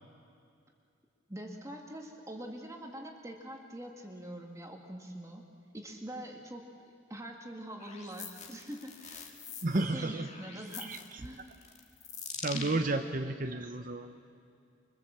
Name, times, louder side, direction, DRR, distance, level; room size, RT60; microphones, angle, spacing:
voice 1, 1.3-5.4 5.7-9.3 9.7-11.5 12.5-12.8, right 1 dB, 15° right, 2 dB, 1.8 m, -44 dB
sound 1, 7.8-12.8, left 6 dB, 35° left, 2.0 m, -44 dB
voice 2, 9.6-10.3 10.8-11.0 12.4-14.1, right 2 dB, 45° right, 8 dB, 0.7 m, -32 dB
25.5 x 23.5 x 7.4 m, 2.4 s
head